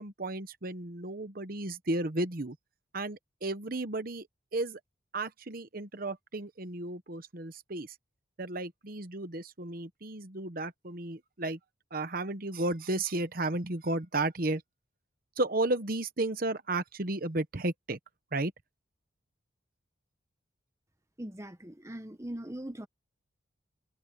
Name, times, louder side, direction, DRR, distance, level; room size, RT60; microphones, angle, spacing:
voice 1, 0.0-2.6 2.9-4.3 4.5-4.8 5.1-7.9 8.4-11.6 11.9-14.6 15.4-18.0 18.3-18.5, right 2 dB, 45° right, 1.0 m, -33 dB
voice 2, 21.2-22.9, right 1 dB, 15° right, 1.0 m, -40 dB
head